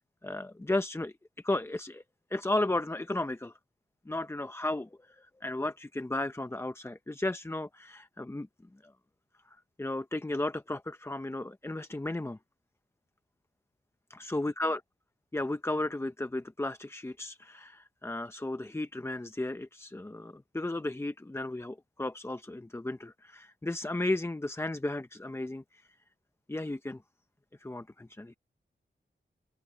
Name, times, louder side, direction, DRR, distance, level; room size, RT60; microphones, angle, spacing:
voice 1, 0.2-1.1 1.4-2.0 2.3-3.5 4.1-4.9 5.2-8.5 8.8-8.9 9.8-12.4 14.1-14.8 15.3-25.6 26.5-27.0 27.6-28.4, left 2 dB, 10° left, 0.6 m, -34 dB
open air
cardioid pair, 70°, 20 cm